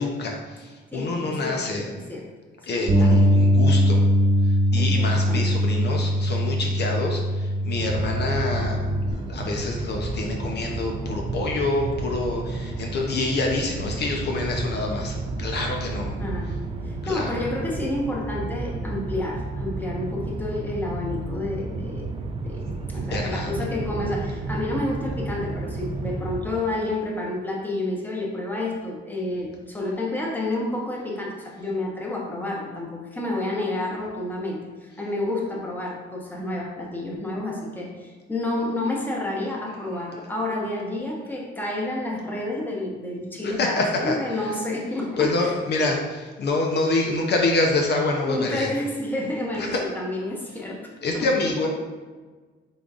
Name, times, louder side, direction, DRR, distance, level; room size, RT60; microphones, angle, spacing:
voice 1, 0.0-1.9 2.6-4.0 4.4-8.8 9.1-16.2 17.0-17.3 22.7-23.5 43.4-44.5 45.2-48.7 49.6-49.8 51.0-51.7, left 2 dB, 55° left, 1 dB, 0.6 m, -26 dB
voice 2, 0.9-1.6 1.9-2.3 2.6-3.3 4.7-5.5 16.2-16.6 16.8-22.1 22.4-45.5 48.3-51.3, left 2 dB, 10° left, -2 dB, 1.0 m, -30 dB
Bass guitar, 2.9-9.1, equal, 75° right, 1.3 m, -21 dB
sound 1, 7.7-26.4, right 2 dB, 25° right, 0.5 m, -32 dB
5.1 x 3.8 x 2.4 m, 1.4 s
cardioid pair, 90°, 20 cm